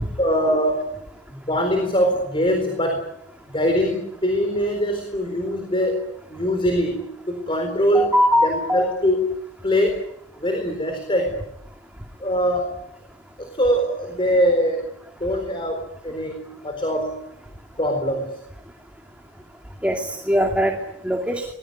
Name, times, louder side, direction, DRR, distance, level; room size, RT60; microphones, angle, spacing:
voice 1, 0.2-0.9 1.4-3.1 3.5-8.1 8.4-9.3 9.6-10.0 10.4-11.4 12.2-12.8 13.4-14.9 15.2-17.2 17.8-18.4, equal, 30° left, 5 dB, 4.1 m, -22 dB
voice 2, 7.8-8.8 19.8-20.7 21.0-21.5, equal, 5° right, 3 dB, 2.5 m, -21 dB
26.5 x 20.5 x 9.4 m, 0.80 s
head